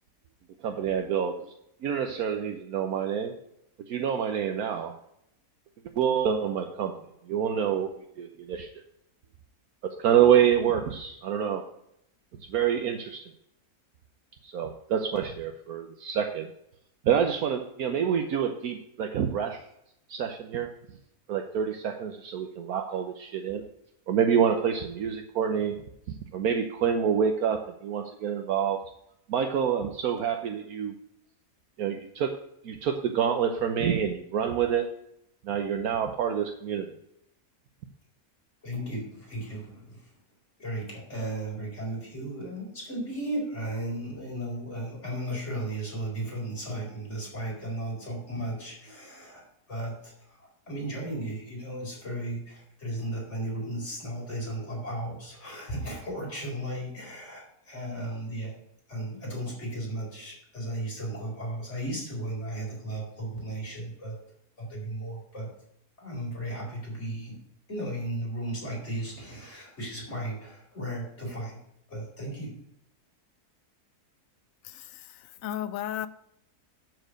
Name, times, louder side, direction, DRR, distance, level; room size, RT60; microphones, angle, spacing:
voice 1, 0.6-1.3 1.8-3.3 3.9-4.9 6.0-6.9 7.3-7.9 8.2-8.7 9.8-11.6 12.5-13.3 14.4-16.5 17.0-19.6 20.1-20.7 21.3-23.6 24.1-25.7 26.1-28.8 29.3-30.9 31.8-32.3 32.6-34.9 35.4-36.9, right 8 dB, 70° right, 1.2 m, -27 dB
voice 2, 38.6-40.0 40.6-49.4 49.7-58.5 58.9-64.2 64.6-65.5 66.0-67.4 67.7-71.6 71.9-72.6, right 1 dB, 45° left, 4.7 m, -35 dB
voice 3, 74.6-76.1, left 11 dB, 70° left, 0.9 m, -35 dB
12.0 x 4.7 x 6.5 m
omnidirectional pair, 1.7 m